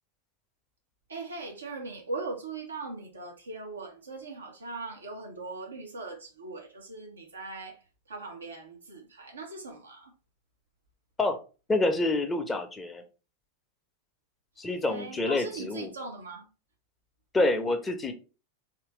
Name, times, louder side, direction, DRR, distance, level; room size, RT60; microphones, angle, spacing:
voice 1, 1.1-10.1 14.9-16.5, right 3 dB, 75° right, 1.4 m, -40 dB
voice 2, 11.7-13.0 14.6-15.9 17.3-18.1, left 2 dB, 15° left, 0.8 m, -27 dB
3.7 x 3.1 x 3.2 m
figure-of-eight pair, 90°, 0 cm